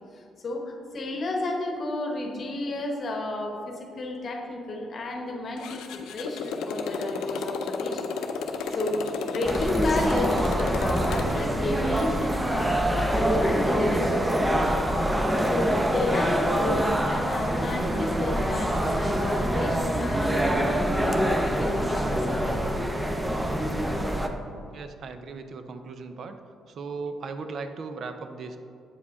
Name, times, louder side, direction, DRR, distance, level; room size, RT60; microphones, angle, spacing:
voice 1, 0.1-5.8 6.1-8.0 8.4-14.8 15.4-22.6, left 2 dB, 50° left, 1 dB, 1.0 m, -32 dB
Motorcycle, 5.6-11.4, left 4 dB, 85° left, 0.5 m, -32 dB
sound 1, 9.4-24.3, equal, 10° right, 0.6 m, -25 dB
voice 2, 24.7-26.4 26.7-28.6, right 4 dB, 60° right, 8 dB, 0.5 m, -37 dB
8.2 x 4.9 x 3.5 m, 2.5 s
cardioid pair, 90°, 0 cm